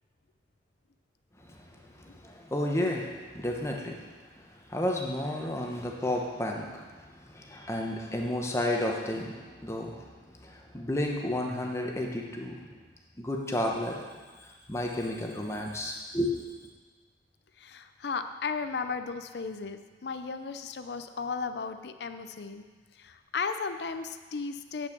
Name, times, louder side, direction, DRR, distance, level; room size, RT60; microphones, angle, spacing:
voice 1, 1.4-12.8 13.2-14.0 14.4-16.4, left 1 dB, 15° left, 0 dB, 1.0 m, -32 dB
voice 2, 17.6-22.7 23.0-24.9, left 5 dB, 60° left, 9 dB, 0.5 m, -35 dB
8.9 x 5.9 x 6.6 m, 1.4 s
head